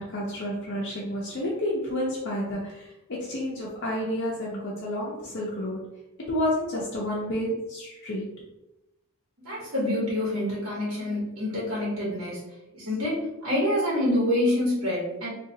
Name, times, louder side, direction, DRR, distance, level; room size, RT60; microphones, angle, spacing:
voice 1, 0.0-5.8 6.3-8.3, left 1 dB, 55° left, -5 dB, 0.6 m, -30 dB
voice 2, 9.4-12.4 12.7-15.3, left 1 dB, 60° right, -7 dB, 1.2 m, -27 dB
3.7 x 2.4 x 2.7 m, 0.92 s
head